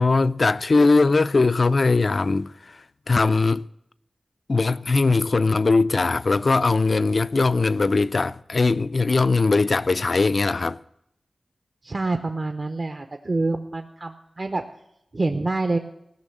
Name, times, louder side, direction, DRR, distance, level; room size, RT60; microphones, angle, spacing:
voice 1, 0.0-3.7 4.5-10.8, left 3 dB, 55° left, 0.4 m, -20 dB
voice 2, 11.8-14.6 15.1-15.8, right 2 dB, 45° right, 0.7 m, -26 dB
16.0 x 6.2 x 9.0 m
wide cardioid pair, 95°, 0 cm